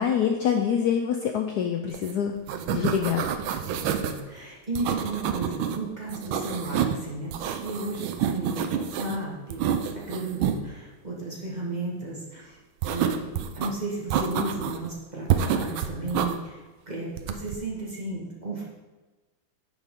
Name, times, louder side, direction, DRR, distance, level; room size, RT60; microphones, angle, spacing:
voice 1, 0.0-2.3 2.7-3.2, left 8 dB, 70° left, 4 dB, 1.0 m, -25 dB
sound 1, 1.9-2.1 2.4-4.2 4.8-5.8 6.1-7.0 7.3-9.2 9.5-10.6 12.8-13.7 14.1-14.9 15.3-16.3 17.2-17.6, right 9 dB, 85° right, 1.4 m, -28 dB
voice 2, 2.5-3.0 3.6-7.4 7.6-16.6 16.9-18.6, right 2 dB, 25° right, -4 dB, 1.3 m, -34 dB
9.7 x 6.2 x 3.6 m, 1.2 s
omnidirectional pair, 2.2 m